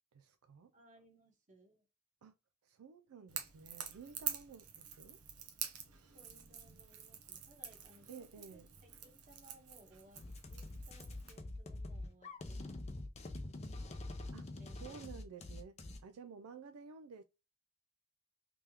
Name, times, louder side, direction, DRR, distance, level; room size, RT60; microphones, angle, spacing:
voice 1, 0.1-0.7 2.2-2.3 2.6-5.2 8.1-8.7 14.3-17.2, right 6 dB, 75° right, 0.4 m, -53 dB
voice 2, 0.7-1.8 6.1-8.7 9.0-12.7 13.2-13.7 14.6-15.1 15.4-15.5, right 1 dB, 35° right, 1.3 m, -64 dB
Crackle / Crack, 3.3-11.4, right 8 dB, 90° right, 0.9 m, -47 dB
sound 1, 10.2-16.0, left 2 dB, 30° left, 0.6 m, -45 dB
3.4 x 3.4 x 2.9 m
head